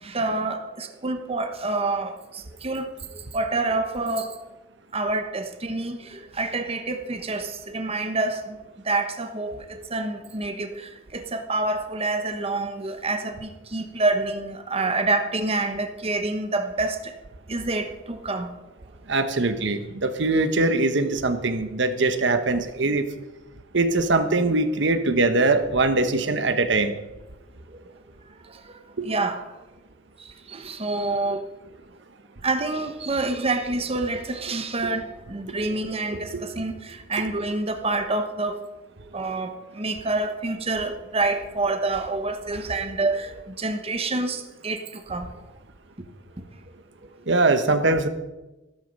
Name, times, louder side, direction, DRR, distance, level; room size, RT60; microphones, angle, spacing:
voice 1, 0.0-4.4 4.9-8.6 8.8-17.1 17.5-18.5 27.7-27.8 28.5-28.8 29.0-29.5 30.2-31.5 32.4-38.6 39.1-45.3, right 2 dB, 30° right, 7 dB, 1.1 m, -27 dB
voice 2, 19.1-23.0 23.7-27.0 29.0-29.1 36.3-36.5 47.3-48.1, right 2 dB, 65° right, 9 dB, 1.2 m, -22 dB
13.5 x 13.0 x 5.4 m, 1.1 s
head